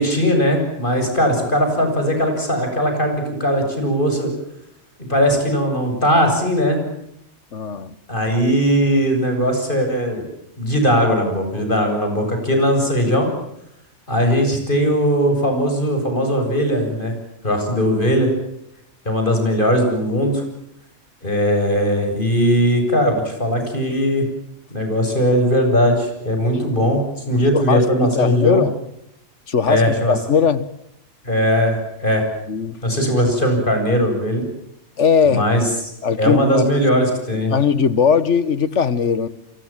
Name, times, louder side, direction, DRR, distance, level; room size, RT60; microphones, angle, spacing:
voice 1, 0.0-4.3 5.1-6.8 8.1-10.2 10.6-13.3 14.1-17.1 17.4-18.3 19.0-20.4 21.2-24.2 24.7-27.0 27.3-28.6 29.7-30.1 31.2-32.3 32.8-34.4 35.3-35.6 36.2-37.5, equal, 45° left, 8.3 m, -19 dB
voice 2, 7.5-8.0 26.5-26.8 27.3-28.8 29.5-30.7 32.5-32.8 35.0-35.7 36.0-36.9 37.5-39.3, left 6 dB, 80° left, 1.7 m, -19 dB
29.5 x 24.5 x 7.5 m
omnidirectional pair, 1.2 m